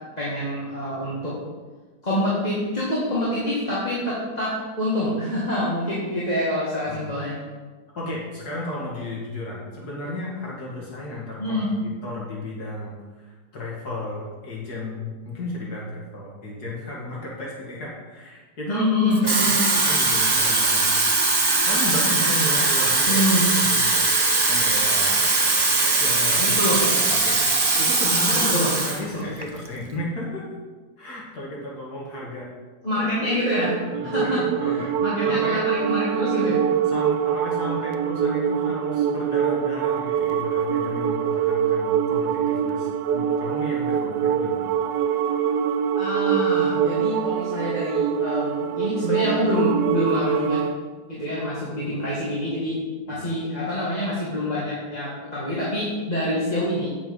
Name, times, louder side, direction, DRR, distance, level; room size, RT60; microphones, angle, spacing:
voice 1, 0.2-1.4 2.0-7.4 11.4-11.7 18.7-19.6 23.1-23.5 26.4-26.9 28.3-28.7 29.1-29.3 32.8-33.7 34.0-36.6 46.0-50.6 51.1-52.8 53.1-56.9, left 1 dB, 25° left, -8 dB, 2.0 m, -26 dB
voice 2, 6.9-7.2 8.0-18.9 19.2-21.2 21.6-23.3 23.6-24.1 24.5-25.2 26.0-26.6 27.1-28.5 28.8-30.4 31.0-32.5 33.9-34.9 35.3-35.7 36.9-44.8 53.1-53.2, left 1 dB, 75° left, -4 dB, 2.5 m, -34 dB
Water tap faucet / Fill (with liquid), 19.1-29.0 29.4-29.7, right 3 dB, 30° right, 0.4 m, -20 dB
sound 1, 33.2-50.8, right 8 dB, 80° right, 1.1 m, -24 dB
8.8 x 7.0 x 5.4 m, 1.4 s
omnidirectional pair, 1.7 m